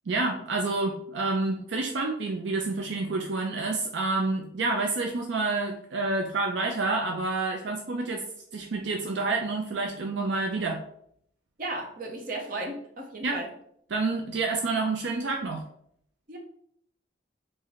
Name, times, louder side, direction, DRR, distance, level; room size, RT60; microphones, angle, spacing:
voice 1, 0.1-8.2 8.5-10.8 13.2-13.4 13.9-15.6, right 3 dB, 75° right, 2 dB, 0.5 m, -28 dB
voice 2, 11.6-13.5 16.3-16.4, right 2 dB, 50° right, 0 dB, 0.8 m, -35 dB
3.1 x 2.6 x 3.9 m, 0.67 s
head